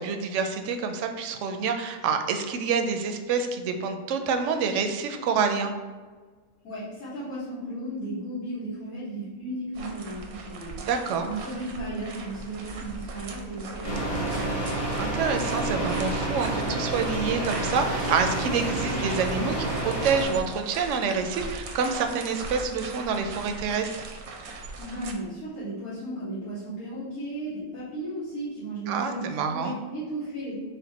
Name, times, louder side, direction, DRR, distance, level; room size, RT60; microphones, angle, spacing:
voice 1, 0.0-5.7 10.8-11.3 15.0-23.9 28.9-29.8, right 5 dB, 70° right, 6 dB, 0.8 m, -27 dB
voice 2, 6.6-10.9 11.2-14.8 24.8-30.5, right 1 dB, 80° left, -12 dB, 1.8 m, -35 dB
sound 1, 9.7-25.1, right 3 dB, 85° right, 1.1 m, -39 dB
sound 2, 13.8-20.2, right 1 dB, 35° left, 1.7 m, -29 dB
5.2 x 2.4 x 4.0 m, 1.4 s
omnidirectional pair, 1.5 m